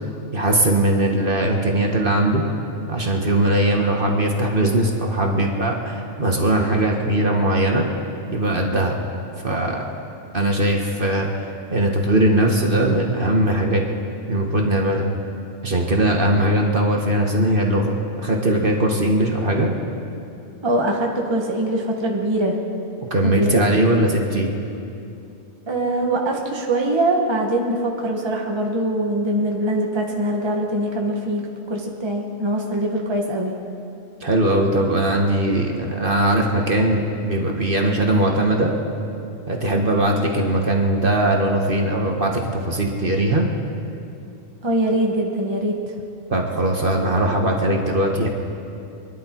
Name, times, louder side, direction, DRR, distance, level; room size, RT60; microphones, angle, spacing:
voice 1, 0.3-2.4 2.9-7.9 8.3-8.9 9.4-9.9 10.3-11.4 11.7-13.8 14.3-15.0 15.6-19.7 23.1-24.5 34.2-38.7 39.5-43.4 46.3-48.3, right 1 dB, 40° right, 1 dB, 1.6 m, -20 dB
voice 2, 20.6-22.6 23.2-23.6 25.7-33.5 44.6-45.8, right 1 dB, 20° right, 0 dB, 1.3 m, -23 dB
26.0 x 11.0 x 4.5 m, 2.6 s
omnidirectional pair, 1.4 m